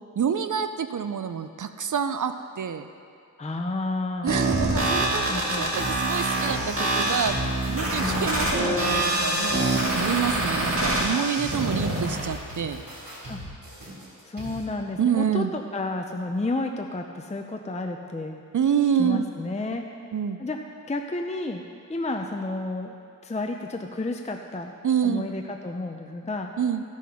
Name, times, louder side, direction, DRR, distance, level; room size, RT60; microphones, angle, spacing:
voice 1, 0.2-2.9 4.2-7.3 7.7-12.8 15.0-15.5 18.5-19.3 20.1-20.4 24.8-25.3 26.6-26.8, right 8 dB, 60° right, 9 dB, 0.5 m, -27 dB
voice 2, 3.4-4.4 5.3-5.7 8.0-8.3 13.3-13.4 14.2-18.4 19.0-19.8 20.4-20.6 20.9-21.6 21.9-23.0 23.2-24.8 25.0-26.5, left 2 dB, 20° left, 4 dB, 0.5 m, -31 dB
sound 1, 4.3-12.3, right 1 dB, 40° right, 1.9 m, -25 dB
sound 2, 5.0-14.7, equal, 80° right, 3.0 m, -40 dB
14.0 x 6.3 x 5.6 m, 2.4 s
wide cardioid pair, 90°, 34 cm